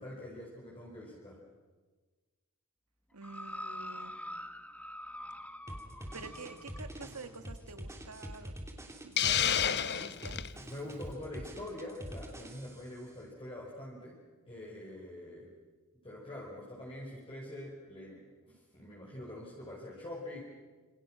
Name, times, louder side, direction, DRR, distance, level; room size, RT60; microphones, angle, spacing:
voice 1, 0.0-1.4 9.2-9.6 10.6-14.2 14.5-15.5 16.0-20.4, left 1 dB, 25° left, -4 dB, 5.1 m, -45 dB
voice 2, 3.1-4.1 6.1-8.5 9.0-10.4, right 3 dB, 85° right, 8 dB, 2.0 m, -47 dB
sound 1, 3.2-6.9 7.7-7.8, left 1 dB, 5° left, 1.1 m, -44 dB
sound 2, 5.7-13.0, equal, 15° right, 3.2 m, -45 dB
Hiss, 9.2-10.5, left 9 dB, 50° left, 0.8 m, -29 dB
28.0 x 27.5 x 6.3 m, 1.4 s
head